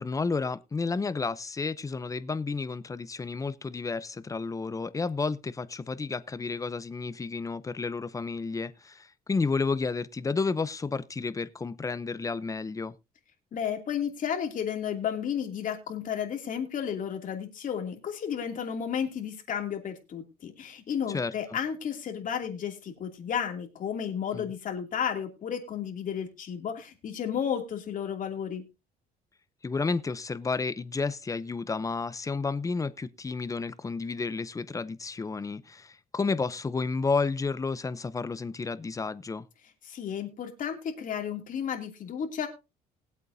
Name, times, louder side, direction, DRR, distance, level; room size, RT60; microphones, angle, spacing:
voice 1, 0.0-12.9 21.1-21.3 24.3-24.5 29.6-39.4, left 4 dB, 20° left, 0.7 m, -31 dB
voice 2, 13.5-28.6 39.8-42.5, left 8 dB, 50° left, 2.8 m, -33 dB
20.5 x 8.2 x 2.7 m
cardioid pair, 110°, 17 cm